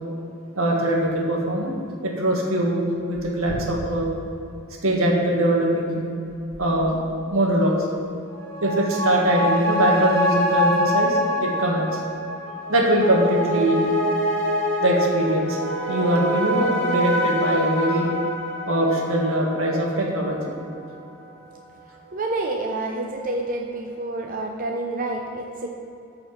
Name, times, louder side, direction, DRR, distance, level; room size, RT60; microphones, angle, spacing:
voice 1, 0.6-1.8 2.0-4.1 4.8-6.0 6.6-7.0 7.3-7.9 8.6-11.9 12.7-13.8 14.8-15.6 15.9-18.1 18.7-20.5, right 1 dB, 80° right, -1 dB, 1.8 m, -22 dB
sound 1, 8.3-21.2 21.5-21.6, equal, 60° right, 2.0 m, -25 dB
voice 2, 22.1-25.7, right 2 dB, 40° right, 1 dB, 0.7 m, -28 dB
13.5 x 5.0 x 6.0 m, 2.7 s
head